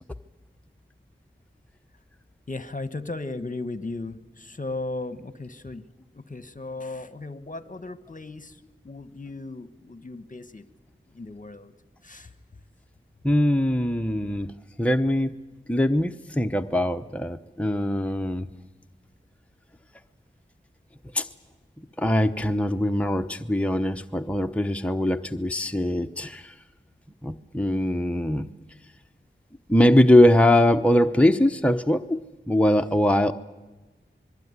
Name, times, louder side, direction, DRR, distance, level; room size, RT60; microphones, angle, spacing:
voice 1, 2.5-5.9 6.1-10.6 11.1-11.7 12.0-12.3, left 2 dB, 40° left, 13 dB, 1.3 m, -36 dB
voice 2, 13.2-14.5 14.8-15.3 15.7-18.5 21.1-21.3 22.0-26.5 27.2-28.5 29.7-33.3, left 1 dB, 5° left, 6 dB, 0.9 m, -22 dB
26.5 x 21.0 x 9.7 m, 1.2 s
wide cardioid pair, 55°, 20 cm